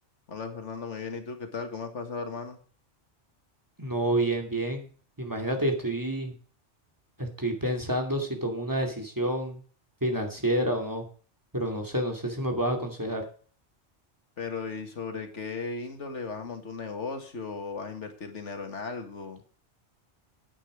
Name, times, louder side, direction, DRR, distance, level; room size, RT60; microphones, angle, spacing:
voice 1, 0.3-2.6 14.4-19.4, left 4 dB, 85° left, 6 dB, 2.1 m, -36 dB
voice 2, 3.8-4.9 5.2-6.4 7.2-9.6 10.0-11.0 11.5-13.2, right 1 dB, 15° right, 3 dB, 2.4 m, -29 dB
10.0 x 8.8 x 4.9 m, 0.42 s
omnidirectional pair, 1.2 m